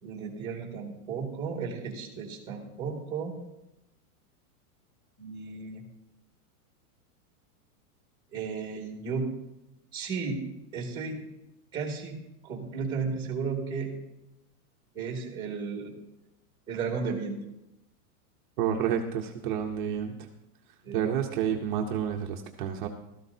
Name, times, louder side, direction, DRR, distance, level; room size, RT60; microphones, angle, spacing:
voice 1, 0.0-3.3 5.2-5.8 8.3-9.3 9.9-10.4 10.7-11.2 11.7-12.2 12.4-13.9 14.9-15.9 16.7-17.4 20.8-21.0, right 5 dB, 10° right, 1 dB, 1.9 m, -34 dB
voice 2, 18.6-20.1 20.9-22.9, right 8 dB, 35° right, 1 dB, 0.7 m, -29 dB
15.5 x 13.0 x 2.7 m, 0.89 s
supercardioid pair, 170°, 46 cm